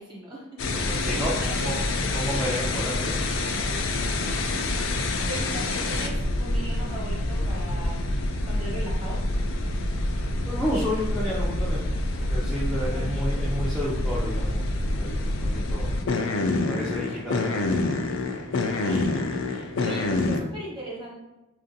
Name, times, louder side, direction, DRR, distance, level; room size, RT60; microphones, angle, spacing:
voice 1, 0.0-1.8 4.2-4.4 5.0-8.0 8.4-9.2 12.9-13.3 18.8-21.1, right 1 dB, 25° right, -5 dB, 1.1 m, -39 dB
sound 1, 0.6-20.4, left 2 dB, 70° left, 0.4 m, -27 dB
voice 2, 0.7-1.3 1.6-1.8 2.1-3.1 10.4-11.8 12.2-14.7 14.9-15.9 16.7-17.7 18.0-18.1, equal, ahead, -9 dB, 0.4 m, -31 dB
3.6 x 2.4 x 2.6 m, 1.0 s
head